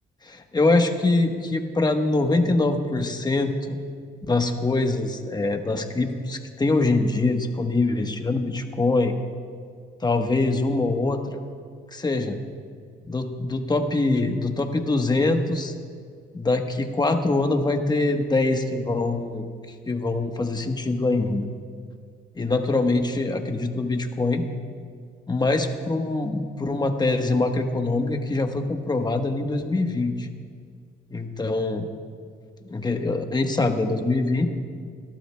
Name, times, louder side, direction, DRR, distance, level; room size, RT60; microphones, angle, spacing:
voice 1, 0.2-3.8 4.3-9.1 10.0-11.4 11.9-12.4 13.1-15.7 16.3-19.5 19.9-21.5 22.3-24.4 25.3-30.3 31.1-31.8 32.6-34.5, left 2 dB, 20° left, 5 dB, 1.1 m, -24 dB
27.5 x 12.0 x 2.2 m, 2.1 s
cardioid pair, 90°, 20 cm